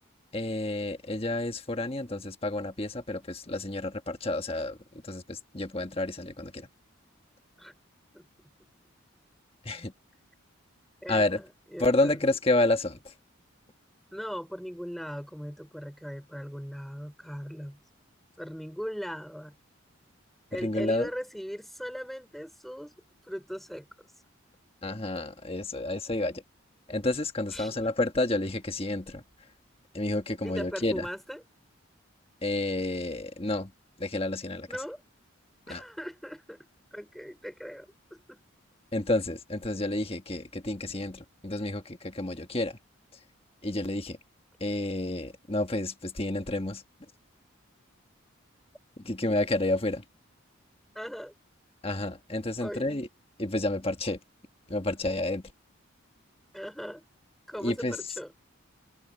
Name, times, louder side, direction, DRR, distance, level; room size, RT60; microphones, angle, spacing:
voice 1, 0.3-4.8 5.0-6.7 9.6-9.9 11.1-11.4 11.8-13.1 20.6-21.1 24.8-26.4 26.9-29.2 29.9-31.1 32.4-33.7 34.0-34.7 35.7-35.8 38.9-42.8 43.6-44.2 44.6-46.8 49.0-50.0 51.8-53.1 53.4-54.2 54.7-55.4 57.6-58.0, left 2 dB, 25° left, 1.5 m, -30 dB
voice 2, 11.0-11.5 11.7-12.2 14.1-17.8 18.4-19.6 20.5-22.9 23.2-23.9 27.5-27.8 30.4-31.4 34.7-35.0 35.7-38.4 50.9-51.3 52.6-53.0 56.5-57.0 57.5-58.3, equal, ahead, 4.6 m, -39 dB
head